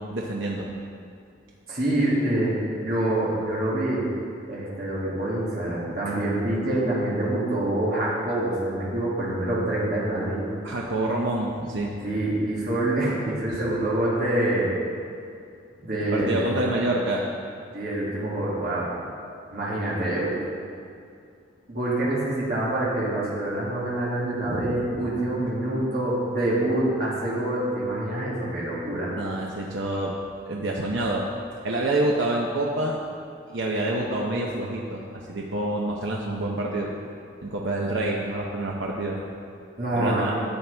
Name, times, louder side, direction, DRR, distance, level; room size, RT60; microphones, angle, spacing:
voice 1, 0.1-0.7 10.6-11.9 13.5-13.6 16.0-17.2 24.5-25.0 29.2-30.1 30.5-31.3 31.6-33.0 33.5-35.0 35.3-36.9 37.4-39.2 39.9-40.3, right 1 dB, 70° right, -2 dB, 0.8 m, -27 dB
voice 2, 1.7-4.0 4.5-10.4 12.0-14.7 15.8-16.6 17.7-18.9 19.5-20.3 21.7-29.1 39.8-40.3, right 1 dB, 45° right, -8 dB, 2.3 m, -26 dB
12.0 x 7.6 x 3.5 m, 2.4 s
head